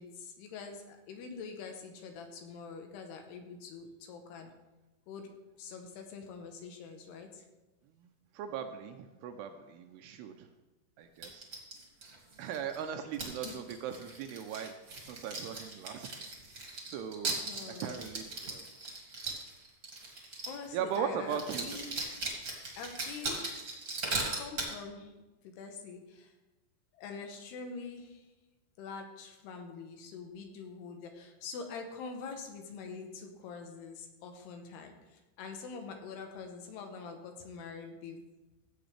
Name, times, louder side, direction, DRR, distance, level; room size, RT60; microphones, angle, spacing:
voice 1, 0.0-4.5 5.1-5.3 5.6-7.4 11.7-11.8 13.4-13.6 17.5-18.1 20.4-21.9 22.8-23.5 24.1-25.1 25.4-26.3 26.9-28.3 28.8-38.2, left 5 dB, 75° left, 4 dB, 2.9 m, -45 dB
voice 2, 8.3-10.5 11.0-11.5 12.4-14.7 15.1-16.1 16.9-17.4 17.8-18.6 20.7-21.6, right 8 dB, 80° right, 6 dB, 2.5 m, -38 dB
sound 1, 11.2-12.8 13.1-20.7 20.9-21.0 21.3-24.7, right 2 dB, 30° right, 1.7 m, -39 dB
16.0 x 7.8 x 3.4 m, 1.1 s
omnidirectional pair, 5.0 m